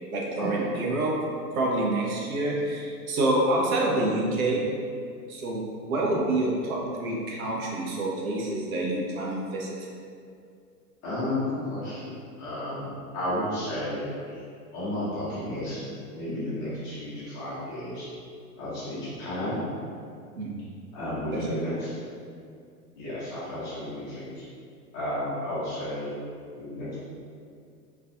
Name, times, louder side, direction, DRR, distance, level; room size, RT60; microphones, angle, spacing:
voice 1, 0.1-1.1 1.5-4.6 5.3-9.8 20.3-20.6 21.3-21.5, right 2 dB, 60° right, -2 dB, 0.6 m, -27 dB
voice 2, 11.0-12.1 12.4-14.4 14.7-15.8 16.1-18.1 18.6-19.6 20.9-21.9 23.0-24.4 24.9-26.1 26.5-27.0, left 1 dB, 15° left, -13 dB, 0.3 m, -32 dB
2.4 x 2.2 x 2.4 m, 2.3 s
figure-of-eight pair, 100°, 49 cm